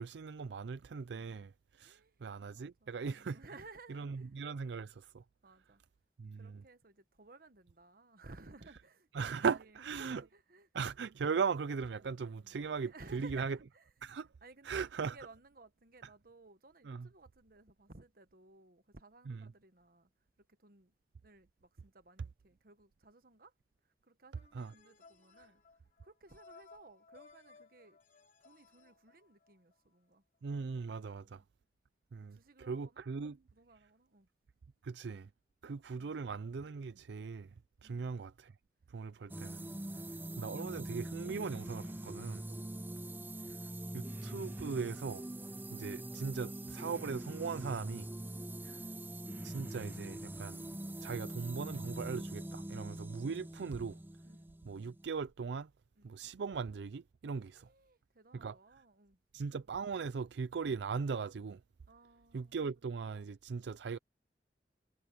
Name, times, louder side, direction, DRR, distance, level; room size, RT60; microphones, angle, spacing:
voice 1, 0.0-3.4 3.9-5.2 6.2-6.6 9.1-10.2 10.7-13.6 14.0-14.3 14.6-15.2 16.8-17.1 19.3-19.4 24.5-24.7 30.4-31.4 32.1-32.4 32.7-33.4 34.8-35.3 35.6-37.5 37.8-38.5 38.9-39.6 40.4-42.4 43.5-43.6 43.9-45.3 45.7-48.1 48.6-48.8 49.4-50.6 51.0-54.0 54.7-55.7 56.0-57.7 58.3-58.6 59.3-61.6 62.3-64.0, right 5 dB, 75° right, 0.4 m, -39 dB
voice 2, 1.8-2.2 2.5-4.3 5.4-5.8 6.3-10.7 12.0-20.1 20.4-20.9 21.2-23.5 23.8-28.0 28.4-30.2 32.2-33.1 33.5-34.3 37.8-38.2 39.3-41.5 42.4-43.0 45.5-45.6 48.3-48.7 54.2-54.6 55.9-56.1 57.4-59.2 61.9-62.6, right 3 dB, 55° right, 1.2 m, -59 dB
sound 1, 24.3-29.7, left 4 dB, 45° left, 3.8 m, -61 dB
sound 2, 39.3-55.0, right 1 dB, 10° right, 0.6 m, -43 dB
head